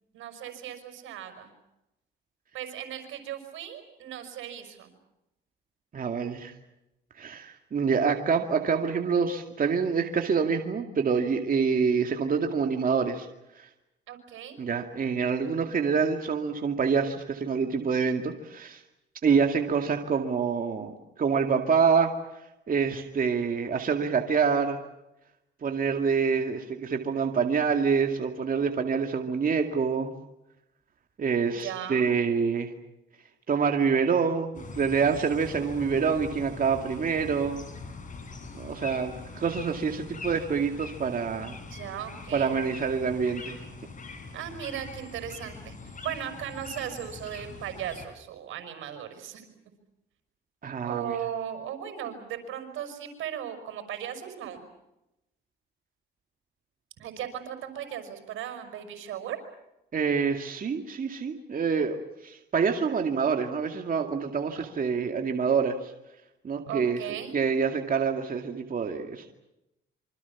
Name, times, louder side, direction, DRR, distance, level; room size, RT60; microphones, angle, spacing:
voice 1, 0.1-1.5 2.5-4.9 14.1-14.6 31.5-32.1 41.7-42.6 44.3-49.4 50.8-54.6 57.0-59.4 66.7-67.4, right 10 dB, 85° right, 8 dB, 5.7 m, -37 dB
voice 2, 5.9-6.5 7.2-13.3 13.5-13.7 14.6-18.8 19.2-22.1 22.7-24.8 25.6-30.1 31.2-32.7 33.5-37.7 38.5-41.6 42.3-43.6 50.6-51.2 59.9-65.9 66.4-67.0 67.3-69.3, right 5 dB, 45° right, 4 dB, 2.3 m, -26 dB
sound 1, 34.5-48.1, left 4 dB, 40° left, 7.0 m, -43 dB
27.0 x 25.0 x 7.3 m, 0.90 s
cardioid pair, 90°, 20 cm